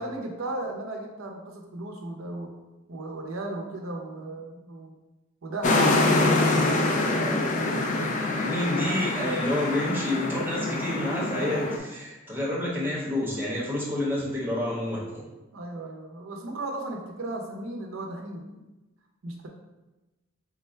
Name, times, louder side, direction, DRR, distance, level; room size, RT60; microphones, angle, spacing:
voice 1, 0.0-2.6 2.9-4.9 5.4-7.0 15.5-18.6 19.2-19.5, right 2 dB, 75° right, 1 dB, 0.7 m, -36 dB
sound 1, 5.6-11.8, left 2 dB, 35° left, 0.4 m, -25 dB
voice 2, 6.2-8.0 8.3-15.3, left 1 dB, 10° right, -6 dB, 1.0 m, -30 dB
3.7 x 2.2 x 4.3 m, 1.1 s
head